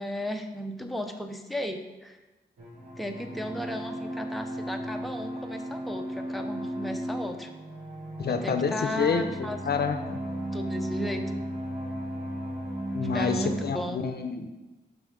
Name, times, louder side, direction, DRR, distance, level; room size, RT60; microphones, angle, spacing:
voice 1, 0.0-2.2 3.0-7.5 8.3-9.6 10.5-11.2 13.1-14.0, left 1 dB, ahead, 4 dB, 0.7 m, -35 dB
sound 1, 2.6-13.7, right 1 dB, 55° right, 2.8 m, -35 dB
voice 2, 8.2-9.2 9.7-10.2 12.9-14.5, left 5 dB, 65° left, 8 dB, 0.6 m, -28 dB
6.3 x 5.6 x 5.1 m, 1.1 s
wide cardioid pair, 90°, 18 cm